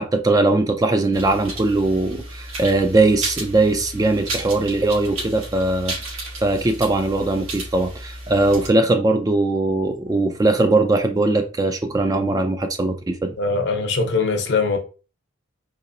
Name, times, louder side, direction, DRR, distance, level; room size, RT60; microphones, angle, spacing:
voice 1, 0.0-13.3, right 2 dB, 20° right, 0.3 m, -20 dB
sound 1, 1.1-8.7, right 2 dB, 85° right, 1.8 m, -33 dB
voice 2, 13.4-14.8, left 4 dB, 55° left, 0.7 m, -21 dB
4.0 x 2.9 x 2.6 m
head